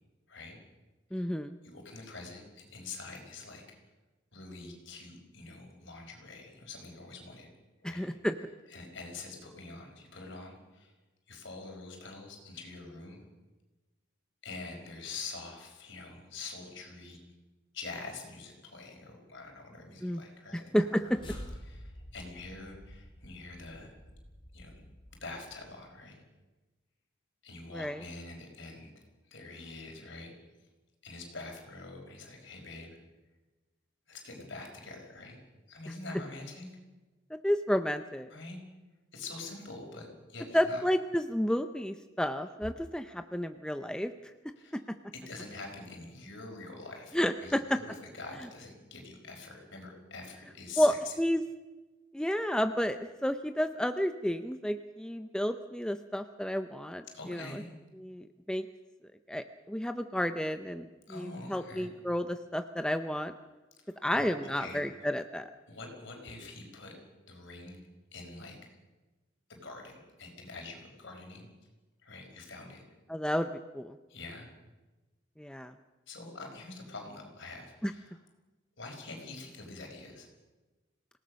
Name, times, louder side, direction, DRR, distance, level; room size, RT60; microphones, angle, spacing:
voice 1, 0.3-0.6 1.1-1.2 1.6-3.6 4.3-7.5 7.8-8.1 8.7-10.9 11.3-13.2 14.4-17.2 17.7-21.1 21.7-23.9 24.5-24.7 25.2-26.2 27.4-28.9 29.3-30.3 31.0-33.0 34.1-35.4 35.7-36.7 38.3-38.6 39.1-40.8 44.6-44.8 45.1-51.1 57.1-57.7 61.1-61.9 63.8-64.8 65.7-67.0 67.3-68.7 69.5-71.5 72.0-72.8 74.1-74.5 76.1-78.2 78.8-80.3, left 3 dB, 60° left, 2 dB, 5.1 m, -45 dB
voice 2, 1.1-1.6 7.8-8.3 20.0-20.2 20.5-21.0 27.7-28.0 37.4-38.3 40.5-44.1 47.1-47.8 50.8-51.4 52.1-57.0 57.3-57.6 58.0-58.7 59.3-63.3 64.0-65.5 73.1-73.5 73.7-74.0 75.4-75.7 77.8-77.9, equal, 5° left, 8 dB, 0.6 m, -31 dB
sound 1, 20.7-25.9, equal, 25° left, 4.1 m, -49 dB
26.5 x 17.5 x 6.4 m, 1.2 s
head